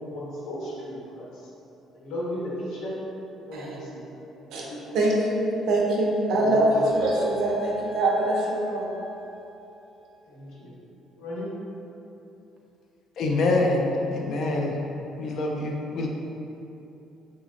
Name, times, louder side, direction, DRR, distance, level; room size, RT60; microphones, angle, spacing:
voice 1, 0.0-1.5 1.9-2.9 3.4-4.2 4.5-5.0 6.4-6.7 10.3-10.7 11.2-11.6, equal, 80° left, -6 dB, 1.0 m, -35 dB
voice 2, 4.9-8.9, right 1 dB, 70° right, -3 dB, 0.6 m, -23 dB
sound 1, 6.9-10.1, right 1 dB, 20° left, 0.7 m, -42 dB
voice 3, 13.2-14.8 15.2-16.1, left 2 dB, 50° left, 0 dB, 0.4 m, -25 dB
4.0 x 2.9 x 2.5 m, 2.8 s
cardioid pair, 165°, 0 cm